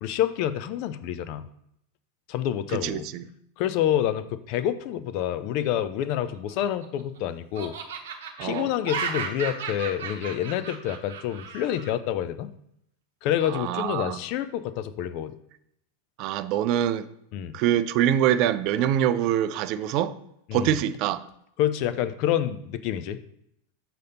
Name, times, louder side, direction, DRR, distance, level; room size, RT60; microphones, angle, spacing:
voice 1, 0.0-1.4 2.3-3.1 3.6-7.7 8.4-12.5 13.2-15.3 17.3-17.6 20.5-20.8 21.6-23.2, left 11 dB, 45° left, 0.5 m, -28 dB
voice 2, 2.8-3.3 8.4-8.7 13.5-14.2 16.2-17.1 17.5-20.2 20.5-21.2, right 11 dB, 40° right, 0.4 m, -24 dB
Laughter, 6.3-7.2 7.5-11.9, right 6 dB, 55° right, 0.9 m, -35 dB
6.5 x 4.0 x 5.3 m
figure-of-eight pair, 90°, 0 cm